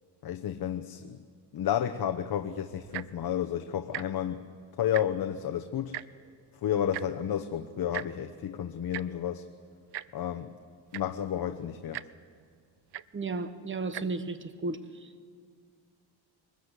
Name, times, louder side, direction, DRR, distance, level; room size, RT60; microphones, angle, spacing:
voice 1, 0.2-1.2 1.5-4.4 4.8-6.0 6.6-9.4 10.1-10.5 10.9-12.0, left 10 dB, 55° left, 6 dB, 0.9 m, -31 dB
Tick-tock, 2.8-3.2 3.9-4.0 4.4-4.5 4.8-5.3 5.9-6.0 6.9-7.1 7.9-8.1 8.9-9.0 9.9-10.1 10.6-10.7 10.9-11.2 11.9-12.1 12.9-13.0 13.8-14.0 14.7-14.8, right 14 dB, 65° right, 0.6 m, -37 dB
voice 2, 13.1-15.3, right 3 dB, 25° right, 10 dB, 1.2 m, -34 dB
23.0 x 20.0 x 8.2 m, 2.1 s
cardioid pair, 140°, 43 cm